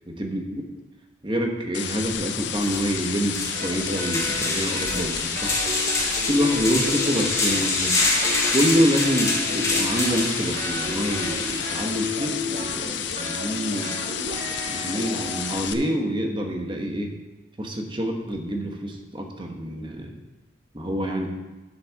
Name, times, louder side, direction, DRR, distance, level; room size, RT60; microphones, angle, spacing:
voice 1, 0.2-0.7 1.2-5.6 6.3-7.9 8.5-14.0 14.3-17.1 17.6-20.1 20.7-21.3, equal, 25° right, 2 dB, 1.1 m, -26 dB
sound 1, 1.7-15.7, left 9 dB, 55° left, 0.6 m, -31 dB
sound 2, 2.1-2.2 2.6-12.1, left 2 dB, 15° left, 1.3 m, -27 dB
sound 3, 3.5-5.1 5.3-7.7 8.0-15.6, left 1 dB, 40° right, 1.0 m, -34 dB
7.3 x 7.3 x 6.3 m, 1.1 s
head